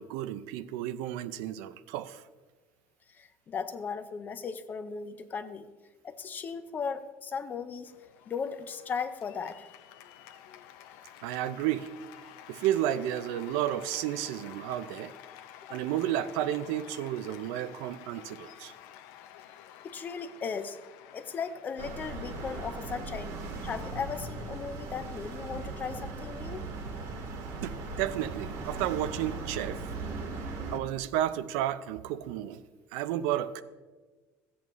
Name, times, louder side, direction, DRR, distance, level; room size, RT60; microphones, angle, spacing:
voice 1, 0.0-2.2 11.2-11.9 12.5-15.1 15.7-18.7 27.6-29.8 30.7-32.6 32.9-33.6, right 12 dB, 90° right, 0.5 m, -32 dB
voice 2, 3.1-5.7 6.0-7.9 8.3-9.6 15.7-15.8 19.8-20.8 21.1-23.3 23.6-27.0, left 6 dB, 30° left, 0.6 m, -37 dB
Cheering / Applause, 7.9-27.1, left 11 dB, 85° left, 0.6 m, -52 dB
sound 1, 21.8-30.8, right 3 dB, 65° right, 1.5 m, -38 dB
14.0 x 8.6 x 3.1 m
cardioid pair, 135°, 6 cm